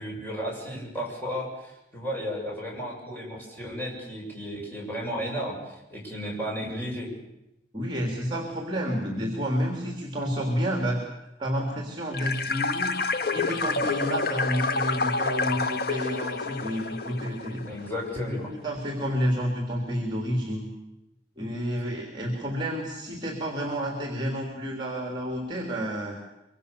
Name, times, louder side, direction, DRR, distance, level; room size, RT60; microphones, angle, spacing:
voice 1, 0.0-5.6 5.9-7.1 17.6-18.5, equal, 10° left, -3 dB, 7.3 m, -34 dB
voice 2, 7.7-11.0 11.4-17.6 18.1-20.7 21.4-26.2, equal, 25° right, 1 dB, 3.4 m, -30 dB
sound 1, 12.1-17.9, left 3 dB, 60° left, 0.9 m, -28 dB
24.5 x 24.5 x 6.9 m, 0.90 s
head